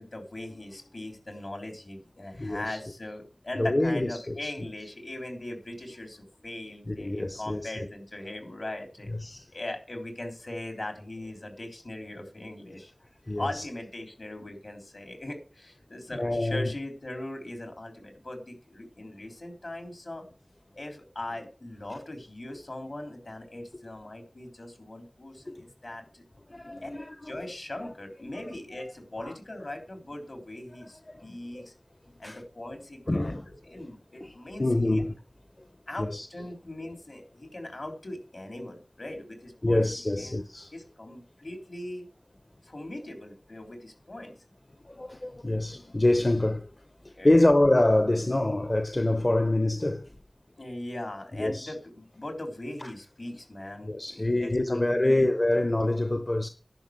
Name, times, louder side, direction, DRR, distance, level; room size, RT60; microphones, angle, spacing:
voice 1, 0.0-9.1 9.5-12.9 13.4-20.3 20.7-26.2 26.8-26.9 27.2-31.7 32.2-33.3 33.6-35.0 35.9-39.8 40.1-40.4 40.7-42.1 42.6-44.3 47.1-47.5 50.6-55.6, left 1 dB, 70° left, 3.6 m, -40 dB
voice 2, 2.3-2.8 3.5-4.5 6.9-7.7 9.1-9.5 13.3-13.7 16.2-16.7 26.5-27.3 28.3-28.4 29.2-29.3 31.1-31.7 32.2-32.4 33.1-33.5 34.2-34.3 34.6-35.1 36.0-36.3 39.6-40.7 44.8-46.7 47.0-50.2 51.4-51.7 52.8-52.9 53.8-56.5, left 1 dB, 45° left, 0.9 m, -26 dB
11.0 x 6.1 x 7.8 m
wide cardioid pair, 45°, 0 cm